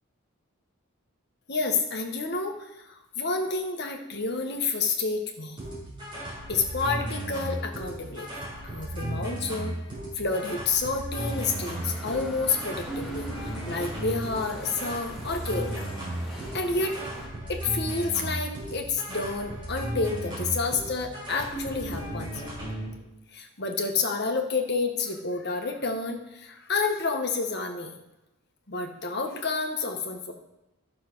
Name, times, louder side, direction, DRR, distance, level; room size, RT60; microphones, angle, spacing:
voice 1, 1.5-5.6 6.5-8.3 8.6-9.8 10.1-15.9 16.4-17.0 17.4-22.3 23.3-27.9 28.7-30.3, left 4 dB, 50° left, 3 dB, 1.5 m, -29 dB
sound 1, 5.6-22.9, right 1 dB, 20° right, 4.7 m, -35 dB
Bicycle, 11.2-17.3, equal, ahead, 2.4 m, -42 dB
12.0 x 6.6 x 6.1 m, 0.94 s
head